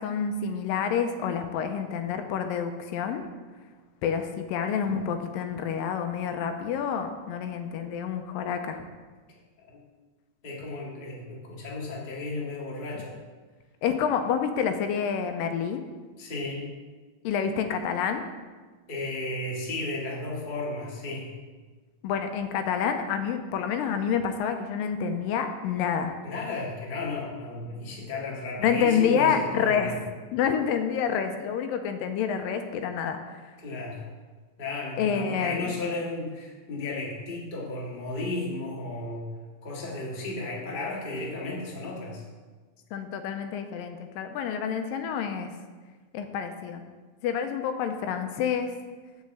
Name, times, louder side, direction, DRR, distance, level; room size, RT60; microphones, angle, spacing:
voice 1, 0.0-3.2 4.0-8.8 13.8-15.8 17.2-18.2 22.0-26.1 28.6-30.0 30.3-33.4 35.0-35.8 42.9-45.5 46.1-46.8 47.2-48.7, left 7 dB, 85° left, 7 dB, 2.3 m, -28 dB
voice 2, 10.4-13.1 16.2-16.7 18.9-21.3 26.2-30.0 33.6-34.0 34.6-39.3 39.6-42.2, left 2 dB, 25° left, -4 dB, 1.1 m, -34 dB
7.1 x 6.6 x 7.6 m, 1.4 s
omnidirectional pair, 4.1 m